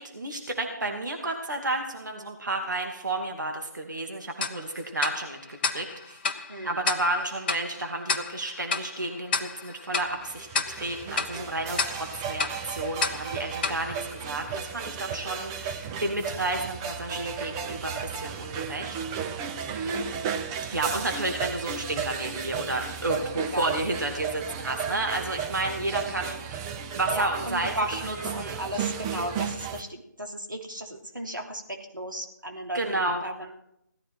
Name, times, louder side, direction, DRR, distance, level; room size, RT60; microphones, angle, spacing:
voice 1, 0.0-6.2 6.6-19.3 19.7-20.2 20.7-27.8 28.1-28.6 32.7-33.2, right 2 dB, 70° right, 2 dB, 2.7 m, -31 dB
Tick-tock, 4.4-14.9, left 4 dB, 30° left, 1.2 m, -33 dB
sound 1, 10.0-29.8, right 7 dB, 15° right, 0.7 m, -34 dB
voice 2, 27.1-33.5, right 1 dB, 85° right, 2 dB, 3.1 m, -35 dB
18.0 x 13.5 x 4.6 m, 0.74 s
figure-of-eight pair, 150°, 10 cm